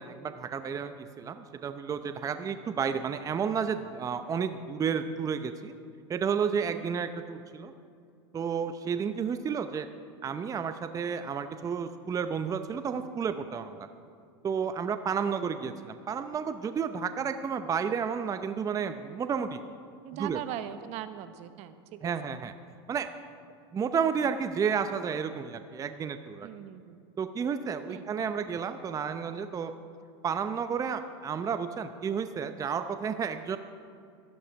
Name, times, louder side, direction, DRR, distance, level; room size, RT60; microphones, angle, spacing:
voice 1, 0.0-5.7 6.1-7.7 8.3-9.9 10.2-13.9 14.4-19.6 20.2-20.4 22.0-22.5 22.9-23.1 23.7-26.5 27.2-29.7 30.2-33.6, right 6 dB, 25° right, 10 dB, 0.7 m, -31 dB
voice 2, 20.0-22.1 26.4-27.0 27.9-28.1, right 11 dB, 55° right, 11 dB, 0.9 m, -40 dB
14.0 x 12.0 x 5.9 m, 2.4 s
hypercardioid pair, 100°, 14 cm